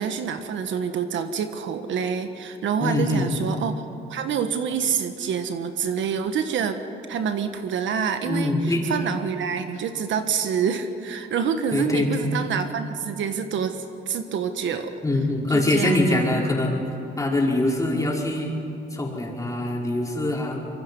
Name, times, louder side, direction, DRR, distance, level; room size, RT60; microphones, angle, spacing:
voice 1, 0.0-3.8 4.1-6.8 7.1-8.5 8.9-14.9 15.5-16.4, right 7 dB, 75° right, 8 dB, 1.4 m, -27 dB
voice 2, 2.8-3.3 8.2-8.8 11.7-12.3 15.0-16.8 17.2-18.5 18.9-20.6, left 1 dB, 15° left, -2 dB, 4.9 m, -23 dB
25.0 x 22.5 x 5.5 m, 2.8 s
cardioid pair, 90°, 20 cm